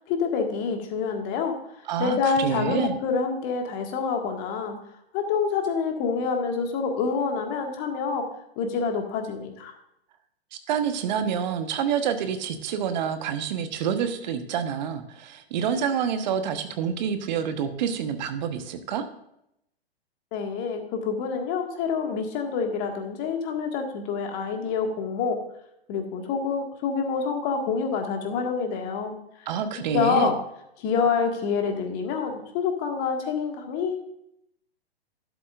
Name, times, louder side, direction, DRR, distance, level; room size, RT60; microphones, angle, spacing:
voice 1, 0.1-1.6 2.0-4.8 5.1-8.3 8.6-9.7 20.3-25.4 25.9-29.5 29.9-30.4 30.8-34.0, left 5 dB, 35° left, 4 dB, 1.9 m, -27 dB
voice 2, 1.9-3.0 10.5-19.1 29.5-30.3, right 8 dB, 45° right, 8 dB, 1.3 m, -28 dB
12.0 x 11.0 x 2.5 m, 0.77 s
figure-of-eight pair, 110°, 32 cm